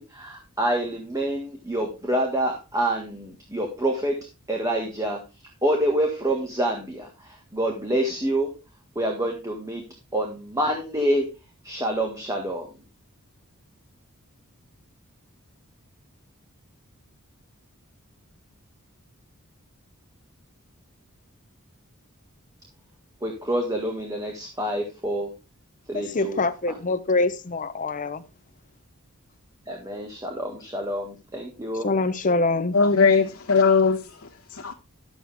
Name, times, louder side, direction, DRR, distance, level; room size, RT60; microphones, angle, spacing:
voice 1, 0.0-5.2 5.6-8.5 8.9-9.8 10.1-11.3 11.6-12.7 23.2-25.3 25.9-26.4 29.7-31.9, right 1 dB, 15° right, 1.7 m, -27 dB
voice 2, 25.9-28.2 31.8-32.8, left 3 dB, 35° left, 0.7 m, -24 dB
voice 3, 32.7-34.7, left 5 dB, 80° left, 1.1 m, -20 dB
11.0 x 7.7 x 3.4 m
head